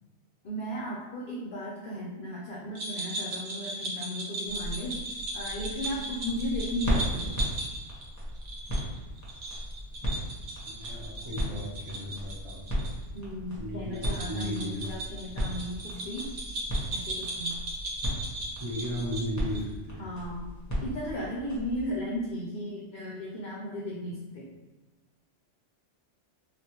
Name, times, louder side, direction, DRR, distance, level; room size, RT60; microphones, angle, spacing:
voice 1, 0.4-5.0 5.3-7.4 13.1-16.3 16.9-17.6 20.0-20.4 20.8-24.5, equal, 60° left, -4 dB, 0.6 m, -35 dB
sound 1, 2.7-12.9 13.2-13.3 13.9-19.7, right 1 dB, 85° right, 1.0 m, -37 dB
sound 2, 4.4-22.0, equal, 15° left, 0.7 m, -36 dB
voice 2, 10.8-12.7 13.6-14.9 18.6-20.0, equal, 30° right, -7 dB, 0.9 m, -35 dB
3.4 x 2.4 x 2.9 m, 1.2 s
omnidirectional pair, 1.2 m